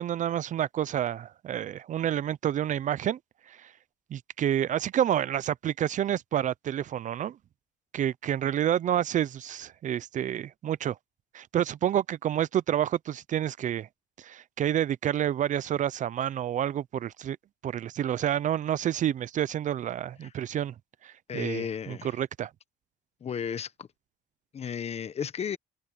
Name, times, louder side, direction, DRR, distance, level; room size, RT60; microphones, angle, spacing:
voice 1, 0.0-3.2 3.5-3.7 4.1-7.4 7.9-11.0 11.3-13.9 14.2-17.4 17.6-20.7 21.0-22.5, right 10 dB, 50° right, 0.6 m, -29 dB
voice 2, 21.3-22.2 23.2-23.9 24.5-25.6, left 7 dB, 40° left, 1.1 m, -34 dB
cardioid pair, 110°, 17 cm